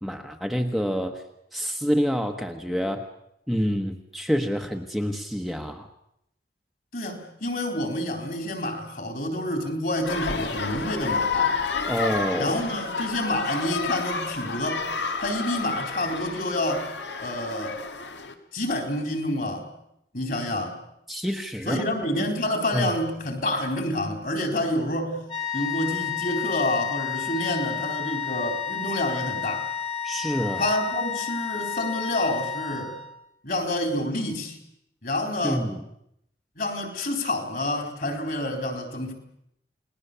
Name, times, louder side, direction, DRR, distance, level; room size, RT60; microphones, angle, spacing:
voice 1, 0.0-1.2 1.5-3.1 3.5-5.9 11.9-12.6 21.1-21.8 22.7-22.9 30.0-30.7 35.4-35.8, equal, ahead, 3 dB, 1.1 m, -27 dB
voice 2, 6.9-11.6 12.4-14.9 15.2-16.9 17.2-17.8 18.5-19.7 20.1-20.8 21.7-25.2 25.5-29.7 30.6-32.9 33.4-34.6 35.0-35.6 36.6-39.1, left 1 dB, 50° left, 4 dB, 4.1 m, -28 dB
sound 1, 10.0-18.3, left 4 dB, 85° left, 2.2 m, -30 dB
sound 2, 25.3-33.2, left 8 dB, 25° left, 1.9 m, -31 dB
29.0 x 20.0 x 6.9 m, 0.78 s
head